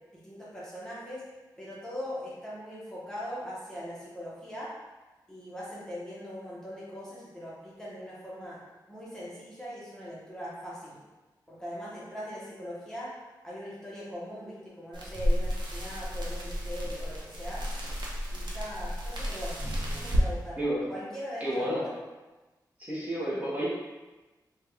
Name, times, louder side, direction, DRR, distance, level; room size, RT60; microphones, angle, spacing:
voice 1, 0.1-1.2 1.6-4.7 5.3-8.6 8.9-11.0 11.5-13.1 13.4-17.6 18.3-19.6 19.9-20.6 20.9-21.8, equal, 5° left, -8 dB, 0.9 m, -40 dB
sound 1, 14.9-20.3, equal, 80° right, 0.7 m, -31 dB
voice 2, 21.4-21.9 22.8-23.7, equal, 20° right, -7 dB, 0.9 m, -30 dB
3.4 x 2.3 x 3.3 m, 1.2 s
wide cardioid pair, 100°, 8 cm